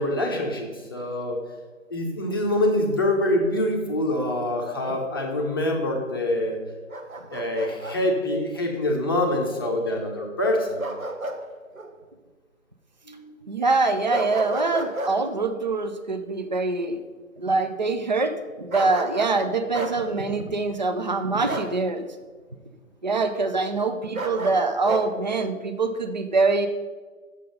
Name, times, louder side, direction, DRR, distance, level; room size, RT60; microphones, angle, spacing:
voice 1, 0.0-1.4 1.9-6.6 7.3-10.9 13.1-13.3, left 1 dB, 15° left, 0 dB, 0.7 m, -25 dB
Bark, 6.9-8.0 10.8-11.4 11.8-11.9 14.1-15.2 18.7-19.4 19.7-20.0 21.5-21.7 24.1-25.1, right 2 dB, 80° right, 1.2 m, -31 dB
voice 2, 13.5-17.0 17.4-18.3 18.6-22.0 23.0-26.7, right 3 dB, 35° right, 8 dB, 0.4 m, -24 dB
7.4 x 6.7 x 5.2 m, 1.4 s
figure-of-eight pair, 145°, 41 cm